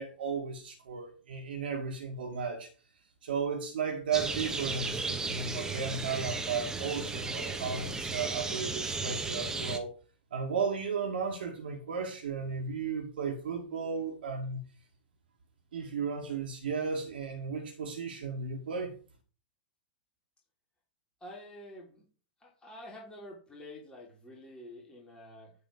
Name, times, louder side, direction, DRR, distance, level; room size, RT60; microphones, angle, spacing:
voice 1, 0.0-2.7 3.2-9.9 10.3-14.6 15.7-18.9, right 5 dB, 70° right, 1 dB, 1.9 m, -34 dB
sound 1, 4.1-9.8, right 3 dB, 10° right, 1.2 m, -35 dB
voice 2, 21.2-22.0 22.4-25.5, left 1 dB, 15° left, -2 dB, 3.0 m, -48 dB
9.8 x 3.7 x 5.3 m, 0.38 s
figure-of-eight pair, 105°, 6 cm